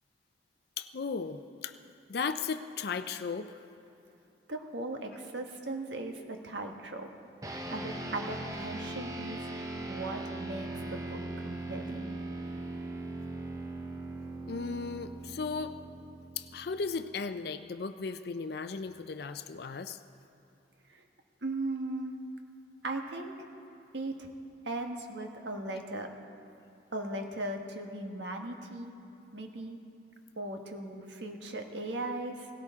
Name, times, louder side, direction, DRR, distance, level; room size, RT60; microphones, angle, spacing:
voice 1, 0.8-1.8 2.1-3.6 14.5-15.8 16.4-20.0, left 5 dB, 60° left, 10 dB, 0.5 m, -36 dB
voice 2, 4.5-7.1 7.7-9.5 9.9-12.2 20.9-21.0 21.4-22.2 22.8-23.4 23.9-24.3 24.6-26.1 26.9-28.9 29.3-29.8 30.4-32.5, right 2 dB, 75° right, 4 dB, 1.3 m, -38 dB
sound 1, 7.4-17.1, right 2 dB, 20° right, 0.9 m, -40 dB
18.5 x 17.0 x 3.6 m, 2.8 s
head